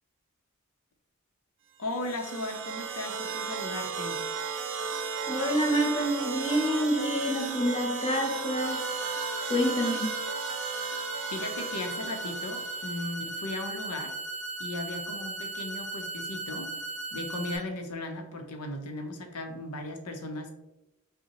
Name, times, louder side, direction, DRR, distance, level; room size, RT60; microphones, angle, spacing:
voice 1, 1.8-4.2 11.3-14.2 14.6-16.7 17.1-20.5, left 2 dB, 90° left, 0.6 m, -37 dB
sound 1, 1.8-13.1, right 5 dB, 60° right, 0.4 m, -35 dB
voice 2, 5.3-8.8 9.5-10.1, equal, 25° left, 0.6 m, -27 dB
sound 2, 8.6-17.6, right 3 dB, 30° right, 0.8 m, -37 dB
5.4 x 2.1 x 2.9 m
head